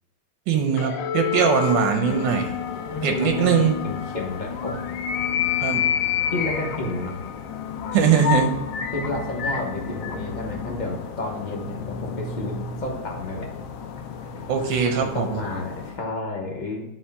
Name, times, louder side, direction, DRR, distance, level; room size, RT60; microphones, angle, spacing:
voice 1, 0.5-2.6 3.0-3.8 5.6-5.8 7.9-8.5 14.5-15.3, right 7 dB, 85° right, 4 dB, 1.4 m, -21 dB
sound 1, 0.8-15.5, left 8 dB, 90° left, 1.3 m, -34 dB
sound 2, 2.1-16.0, left 9 dB, 70° left, 0.8 m, -31 dB
voice 2, 2.9-4.8 6.3-7.1 8.9-13.5 15.0-16.8, left 2 dB, 35° left, -1 dB, 0.9 m, -31 dB
9.3 x 3.2 x 3.4 m, 0.92 s
omnidirectional pair, 2.0 m